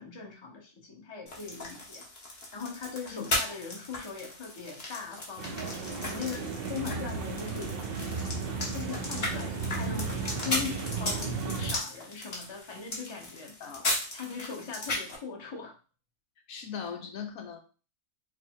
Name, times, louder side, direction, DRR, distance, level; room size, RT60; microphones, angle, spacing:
voice 1, 0.0-2.0 2.5-7.7 8.7-13.5 14.1-15.8, left 6 dB, 25° left, 0 dB, 0.8 m, -40 dB
sound 1, 1.3-15.2, left 2 dB, 45° left, 1.3 m, -36 dB
sound 2, 5.4-11.7, right 4 dB, 55° right, 0.7 m, -34 dB
voice 2, 16.5-17.6, left 7 dB, 75° left, 4 dB, 1.1 m, -39 dB
4.2 x 2.1 x 4.5 m, 0.35 s
omnidirectional pair, 1.5 m